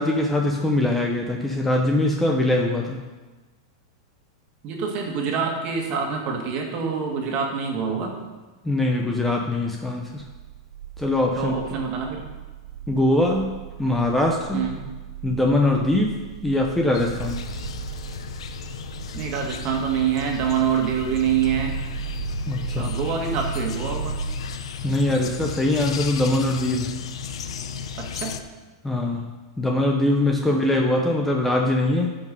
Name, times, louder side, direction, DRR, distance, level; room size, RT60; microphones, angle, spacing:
voice 1, 0.0-3.0 8.6-10.3 11.0-11.6 12.9-14.7 15.2-17.4 22.5-22.9 24.8-27.0 28.8-29.3 29.6-32.1, left 1 dB, 5° left, 1 dB, 0.7 m, -22 dB
voice 2, 4.6-8.1 11.4-12.2 14.5-14.8 19.1-21.7 22.7-24.1 27.9-28.3 30.4-30.5, right 7 dB, 35° right, 1 dB, 1.9 m, -26 dB
sound 1, 10.0-24.6 25.5-26.1, right 7 dB, 80° right, 0.6 m, -36 dB
sound 2, 16.9-28.4, left 7 dB, 85° left, 0.8 m, -34 dB
13.5 x 5.4 x 5.4 m, 1.2 s
supercardioid pair, 150°, 3 cm